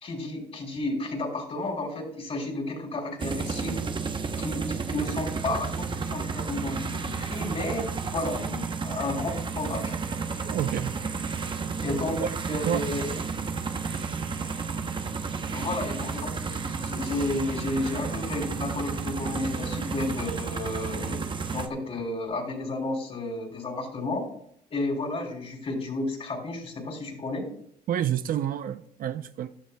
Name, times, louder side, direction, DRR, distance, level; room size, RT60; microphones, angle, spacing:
voice 1, 0.0-3.7 4.4-7.9 8.1-9.9 11.8-12.2 12.5-13.1 15.5-21.2 21.5-24.3 24.7-27.5, left 2 dB, 35° left, 2 dB, 3.2 m, -32 dB
sound 1, 3.2-21.7, right 5 dB, 30° right, 0.8 m, -32 dB
voice 2, 10.4-11.0 12.2-12.9 13.2-13.3 27.9-29.5, right 10 dB, 55° right, 11 dB, 0.5 m, -29 dB
14.5 x 11.0 x 2.2 m, 0.68 s
cardioid pair, 110°, 17 cm